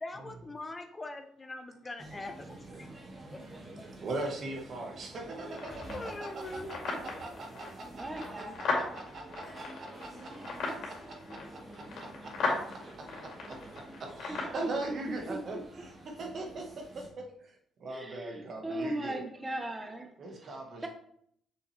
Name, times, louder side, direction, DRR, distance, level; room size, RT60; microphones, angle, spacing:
voice 1, 0.0-2.9 3.3-3.4 5.9-6.7, left 2 dB, 25° left, 7 dB, 0.8 m, -42 dB
sound 1, 2.0-17.1, right 1 dB, 35° right, 2.0 m, -49 dB
voice 2, 4.0-6.6 6.8-19.2 20.2-20.9, right 2 dB, 55° right, 2 dB, 1.5 m, -41 dB
sound 2, 5.5-14.6, left 3 dB, 70° left, 2.2 m, -38 dB
voice 3, 7.9-8.8 14.3-14.7 15.3-15.6 17.9-20.1 20.8-20.9, right 1 dB, 20° right, 4 dB, 0.9 m, -38 dB
6.4 x 5.7 x 3.4 m, 0.68 s
cardioid pair, 90°, 0 cm